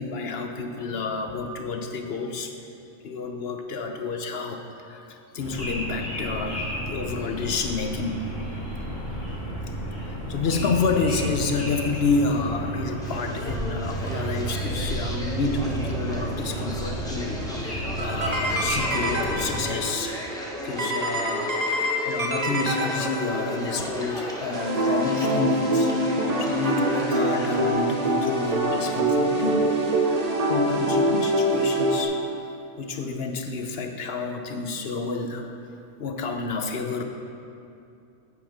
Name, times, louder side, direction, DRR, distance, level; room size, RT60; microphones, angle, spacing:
voice 1, 0.0-2.5 3.0-8.3 10.0-20.2 20.6-21.5 22.0-25.9 26.4-30.0 30.5-32.5 32.8-35.4 36.0-37.0, left 4 dB, 55° left, 5 dB, 0.8 m, -29 dB
sound 1, 5.4-19.7, right 1 dB, 35° left, 1.9 m, -32 dB
sound 2, 13.0-27.8, equal, 5° left, 1.0 m, -35 dB
sound 3, 18.0-19.9 20.8-23.6 24.5-32.0, right 1 dB, 35° right, 0.9 m, -25 dB
9.3 x 7.8 x 5.0 m, 2.7 s
omnidirectional pair, 1.4 m